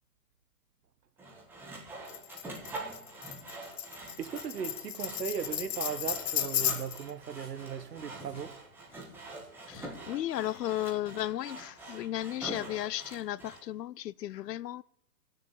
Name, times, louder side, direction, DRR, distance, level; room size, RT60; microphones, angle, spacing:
Sawing, 1.2-13.6, right 2 dB, 5° right, 1.6 m, -45 dB
Tambourine, 2.1-7.1, left 10 dB, 40° left, 0.6 m, -34 dB
voice 1, 4.2-8.5, right 7 dB, 80° right, 1.5 m, -37 dB
sound 1, 5.1-5.7 6.0-6.9 7.3-10.5, left 2 dB, 10° left, 3.9 m, -58 dB
voice 2, 9.7-14.8, left 13 dB, 85° left, 0.6 m, -35 dB
17.5 x 6.6 x 8.5 m
hypercardioid pair, 160°, 48 cm